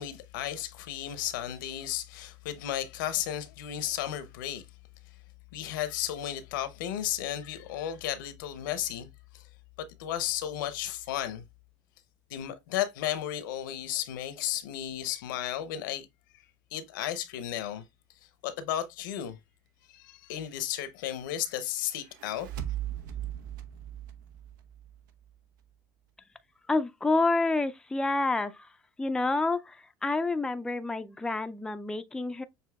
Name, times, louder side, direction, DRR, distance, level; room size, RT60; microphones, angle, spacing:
voice 1, 0.0-4.6 5.5-9.1 9.3-9.4 9.8-11.4 12.3-16.1 16.7-17.8 18.4-19.4 19.9-22.5, left 11 dB, 80° left, 0.7 m, -34 dB
sound 1, 22.0-25.3, right 11 dB, 80° right, 0.7 m, -38 dB
voice 2, 26.7-28.5 29.0-29.8 30.0-32.4, left 3 dB, 5° left, 0.4 m, -28 dB
6.6 x 2.7 x 2.3 m
hypercardioid pair, 90°, 11 cm